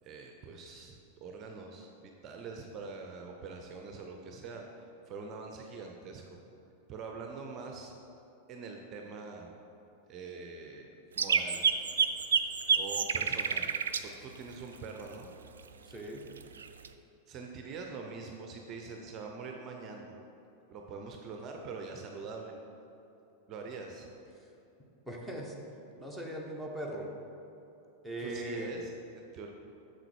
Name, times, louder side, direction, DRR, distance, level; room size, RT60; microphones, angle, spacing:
voice 1, 0.0-6.4 6.9-7.9 8.5-9.5 10.1-11.7 12.7-13.7 14.0-15.3 17.3-20.1 20.7-22.5 23.5-24.1 28.2-29.5, right 4 dB, 35° right, 2 dB, 0.7 m, -44 dB
sound 1, 11.2-14.0 16.4-16.9, right 6 dB, 70° right, 0.4 m, -27 dB
voice 2, 15.9-16.2 25.1-25.5 26.0-27.1 28.0-28.7, right 1 dB, 5° left, -1 dB, 1.2 m, -39 dB
7.8 x 6.6 x 4.5 m, 3.0 s
figure-of-eight pair, 90°, 0 cm